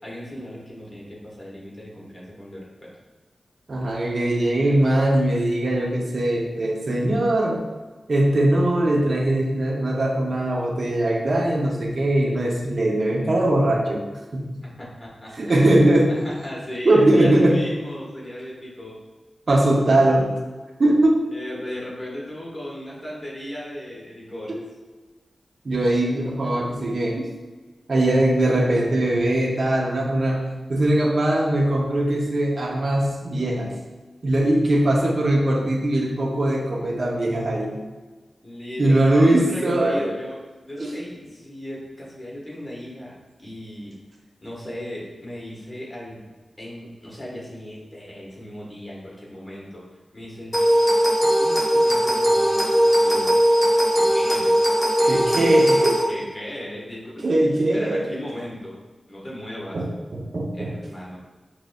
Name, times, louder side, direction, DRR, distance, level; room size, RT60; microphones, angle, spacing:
voice 1, 0.0-2.9 14.8-19.0 21.3-24.6 38.4-40.4 40.7-44.0 44.4-46.3 46.6-49.9 50.1-50.5 51.2-52.7 53.0-53.4 53.9-54.6 55.0-55.4 56.1-57.2 57.7-58.8 59.1-59.8 60.5-61.2, left 1 dB, 25° left, -5 dB, 1.2 m, -36 dB
voice 2, 3.7-7.6 8.1-14.0 14.3-14.6 15.4-16.1 16.8-17.6 19.5-20.3 20.8-21.2 25.6-27.3 27.9-33.7 34.2-37.7 38.8-40.1 40.8-40.9 55.1-56.0 57.2-58.1 59.7-60.7, right 1 dB, 60° right, -1 dB, 0.6 m, -20 dB
sound 1, 50.5-56.0, equal, 5° right, 0.8 m, -19 dB
5.0 x 3.1 x 2.3 m, 1.3 s
wide cardioid pair, 80°, 0 cm